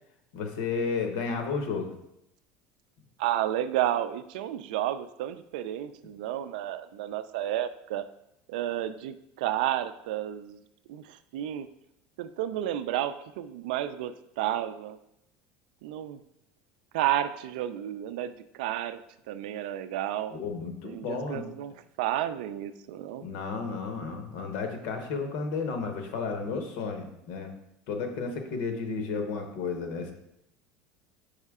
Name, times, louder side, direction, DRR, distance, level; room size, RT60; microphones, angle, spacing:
voice 1, 0.3-1.9 20.3-21.5 23.2-27.5 27.9-30.1, left 4 dB, 60° left, 5 dB, 0.9 m, -32 dB
voice 2, 3.2-8.0 8.5-10.6 10.9-11.7 12.2-15.0 15.8-16.2 16.9-19.0 19.3-20.4 20.8-21.7 22.0-23.3, right 12 dB, 85° right, 12 dB, 0.4 m, -31 dB
5.4 x 4.9 x 3.6 m, 0.79 s
cardioid pair, 170°, 4 cm